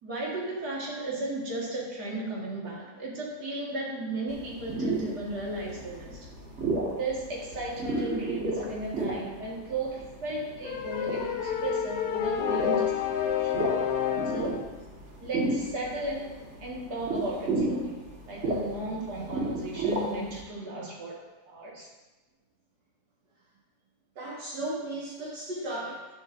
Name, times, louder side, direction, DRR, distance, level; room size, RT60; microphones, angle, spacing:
voice 1, 0.0-6.2 6.9-13.5 14.3-14.7 15.2-21.9, right 2 dB, 70° right, -4 dB, 2.4 m, -35 dB
sound 1, 4.3-20.4, right 2 dB, 45° right, 1.9 m, -34 dB
sound 2, 10.6-14.7, left 9 dB, 65° left, 1.1 m, -29 dB
voice 2, 24.2-26.1, right 1 dB, 85° right, -6 dB, 2.3 m, -35 dB
11.5 x 8.9 x 2.6 m, 1.1 s
omnidirectional pair, 1.7 m